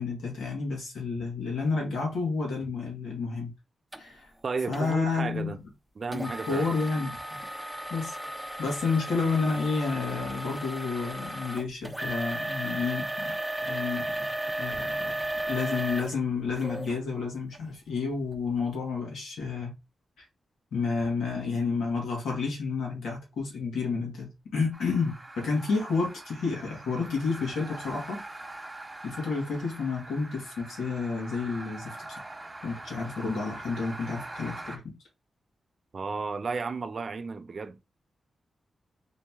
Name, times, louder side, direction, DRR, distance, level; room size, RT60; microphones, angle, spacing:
voice 1, 0.0-3.5 4.0-4.3 4.7-5.5 6.1-7.2 7.9-8.2 8.6-13.4 13.6-14.2 14.6-15.1 15.5-19.7 20.2-20.3 20.7-28.2 29.0-32.2 32.6-34.8, left 4 dB, 90° left, 2.0 m, -30 dB
sound 1, 3.9-4.0 4.7-4.9 6.1-17.0 17.5-17.6 18.2-18.4, right 1 dB, 5° right, 0.8 m, -35 dB
voice 2, 4.4-5.6 6.0-6.7 35.9-37.8, right 4 dB, 55° right, 0.6 m, -33 dB
sound 2, 24.7-34.8, right 2 dB, 25° right, 1.3 m, -43 dB
3.8 x 3.0 x 3.6 m
cardioid pair, 60°, 0 cm